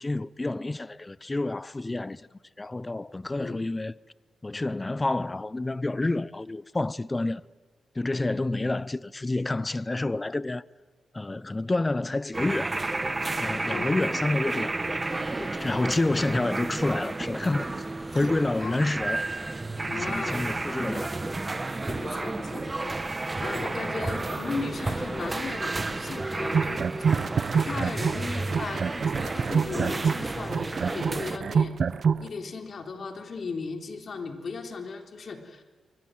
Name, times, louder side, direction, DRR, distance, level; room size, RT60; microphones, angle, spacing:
voice 1, 0.0-2.3 2.6-3.9 4.4-7.4 7.9-10.6 11.1-12.7 13.4-17.8 18.1-19.2 19.9-21.4, left 2 dB, 20° left, 0.7 m, -29 dB
voice 2, 3.3-3.6 13.7-14.1 18.1-18.2 18.6-18.8 19.9-20.5 21.8-23.0 23.4-26.9 27.5-31.8 32.2-35.6, left 4 dB, 55° left, 3.6 m, -36 dB
sound 1, 12.3-31.4, right 2 dB, 25° right, 1.3 m, -31 dB
sound 2, 26.5-28.2 28.5-32.3, right 6 dB, 60° right, 0.9 m, -26 dB
27.0 x 24.5 x 7.9 m
cardioid pair, 75°, 0 cm